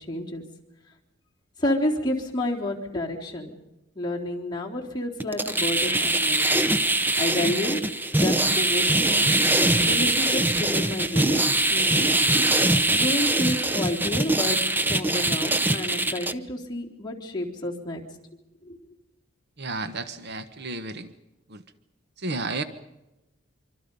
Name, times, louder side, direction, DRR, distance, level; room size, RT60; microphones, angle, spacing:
voice 1, 0.1-0.4 1.6-3.5 4.0-6.4 7.2-7.8 8.2-9.2 9.8-11.4 11.7-12.2 12.9-18.0 18.6-18.8, left 1 dB, 20° left, -2 dB, 3.5 m, -30 dB
sound 1, 5.2-16.3, right 2 dB, 10° right, 0.8 m, -22 dB
voice 2, 19.6-21.1 21.5-21.6 22.2-22.6, right 3 dB, 55° right, 11 dB, 1.2 m, -32 dB
25.5 x 25.0 x 5.4 m, 0.96 s
head